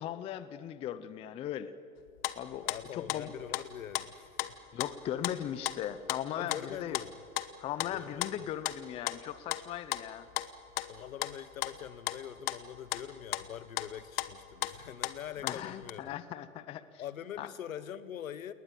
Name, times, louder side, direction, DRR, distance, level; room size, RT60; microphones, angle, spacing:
voice 1, 0.0-1.7 2.4-3.3 4.7-7.0 7.6-10.3 15.4-16.8 17.4-17.5, left 11 dB, 15° left, 14 dB, 0.5 m, -38 dB
sound 1, 2.0-3.7 4.0-4.1 4.4-4.5 4.8-5.4 5.7-15.9, left 16 dB, 45° left, 1.1 m, -36 dB
voice 2, 2.6-4.6 6.4-7.1 7.9-8.5 10.9-16.2 17.0-18.5, left 9 dB, 80° left, 16 dB, 1.3 m, -44 dB
20.5 x 19.5 x 9.0 m, 2.3 s
hypercardioid pair, 135°, 40 cm